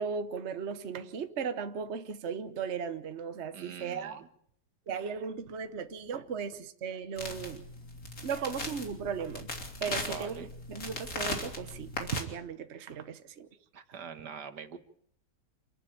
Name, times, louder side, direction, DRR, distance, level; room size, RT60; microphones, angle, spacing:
voice 1, 0.0-4.2 4.9-7.6 8.2-9.5 9.8-13.5, right 6 dB, 45° right, 1.3 m, -36 dB
voice 2, 3.5-4.2 9.8-10.5 13.7-14.8, right 6 dB, 75° right, 2.0 m, -43 dB
sound 1, 7.2-12.2, left 2 dB, 55° left, 3.6 m, -38 dB
28.0 x 11.5 x 8.7 m
omnidirectional pair, 1.8 m